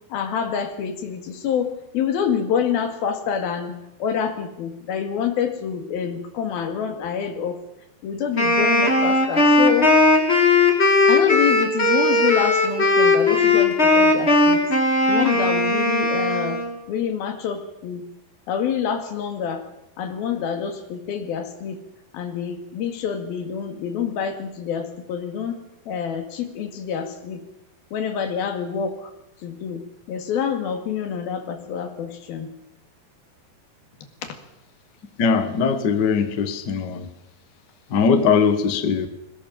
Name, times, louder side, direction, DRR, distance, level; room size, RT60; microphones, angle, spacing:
voice 1, 0.1-7.6 8.0-9.9 11.1-14.6 15.1-16.6 16.9-18.0 18.5-19.6 20.0-21.8 22.1-25.6 25.9-27.4 27.9-29.1 29.4-29.8 30.1-32.5 34.2-34.4, left 7 dB, 85° left, 7 dB, 3.9 m, -27 dB
Wind instrument woodwind instrument, 8.4-16.8, left 2 dB, 20° left, 2.7 m, -18 dB
voice 2, 35.2-37.1 37.9-39.1, left 6 dB, 55° left, 9 dB, 1.1 m, -20 dB
22.0 x 18.0 x 7.4 m, 0.87 s
omnidirectional pair, 4.2 m